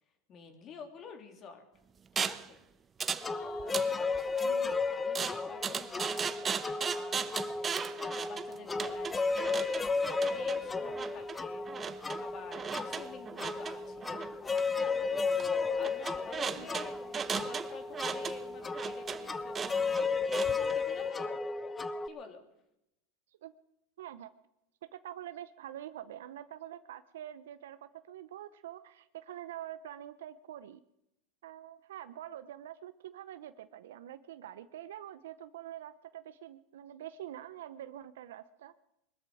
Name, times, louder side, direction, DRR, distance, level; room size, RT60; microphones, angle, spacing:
voice 1, 0.3-1.6 2.2-2.6 3.3-11.6 12.2-14.1 14.8-21.4 22.0-22.4, left 5 dB, 40° left, 5 dB, 3.0 m, -49 dB
sound 1, 2.2-2.5 3.0-3.3 3.6-4.4 5.1-20.8, right 6 dB, 25° right, 0.8 m, -37 dB
sound 2, 3.2-22.1, left 4 dB, 15° left, 0.9 m, -34 dB
voice 2, 4.4-4.8 16.6-16.7 23.4-23.5 24.0-24.3 24.9-30.8 31.4-38.7, right 11 dB, 80° right, 12 dB, 0.7 m, -46 dB
21.5 x 13.0 x 4.9 m, 0.86 s
hypercardioid pair, 110°, 0 cm